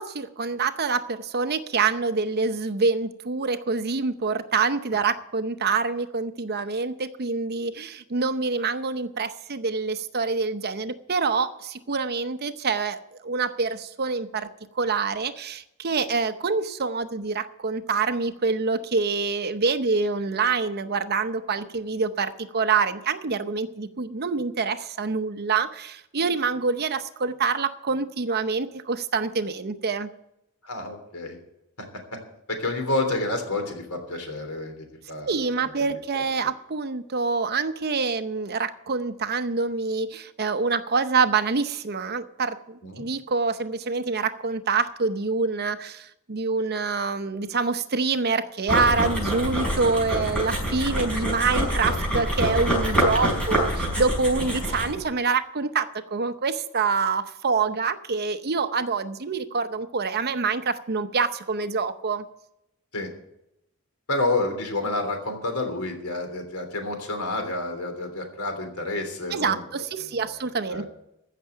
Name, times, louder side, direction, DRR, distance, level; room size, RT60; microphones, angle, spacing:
voice 1, 0.0-14.5 14.7-30.1 35.2-62.3 69.3-70.8, right 4 dB, 45° right, 11 dB, 0.8 m, -26 dB
voice 2, 30.6-31.4 31.8-32.2 32.5-35.4 35.8-36.2 42.8-43.0 62.9-63.1 64.1-69.6 70.2-70.4 70.7-70.9, left 2 dB, 85° left, 5 dB, 3.3 m, -29 dB
sound 1, 48.7-55.0, equal, 5° left, 5.3 m, -26 dB
15.0 x 6.7 x 8.5 m, 0.84 s
head